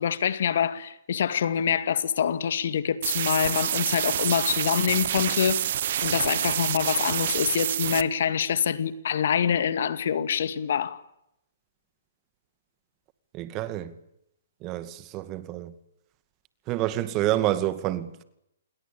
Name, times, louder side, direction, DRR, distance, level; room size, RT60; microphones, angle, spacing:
voice 1, 0.0-5.6 6.0-11.0, left 8 dB, 60° left, 2.2 m, -25 dB
sound 1, 3.0-8.0, right 11 dB, 55° right, 1.4 m, -27 dB
voice 2, 13.3-13.9 14.6-15.7 16.7-18.2, right 14 dB, 30° right, 2.3 m, -28 dB
28.5 x 22.0 x 8.9 m
hypercardioid pair, 135°, 0 cm